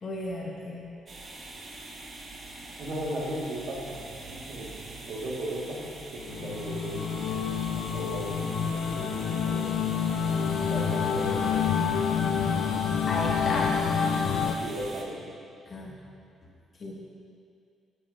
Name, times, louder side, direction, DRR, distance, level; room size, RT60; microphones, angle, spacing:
voice 1, 0.0-0.9 13.1-13.8 15.7-15.9 16.8-16.9, left 2 dB, 40° left, -3 dB, 1.4 m, -33 dB
sound 1, 1.1-15.0, right 2 dB, 45° right, 0.9 m, -44 dB
voice 2, 2.8-7.5 7.8-9.8 10.1-12.0 14.6-15.3, right 1 dB, 65° right, -3 dB, 1.3 m, -37 dB
sound 2, 6.2-14.5, left 7 dB, 75° left, 0.4 m, -28 dB
8.9 x 7.4 x 2.4 m, 2.4 s
cardioid pair, 90°, 0 cm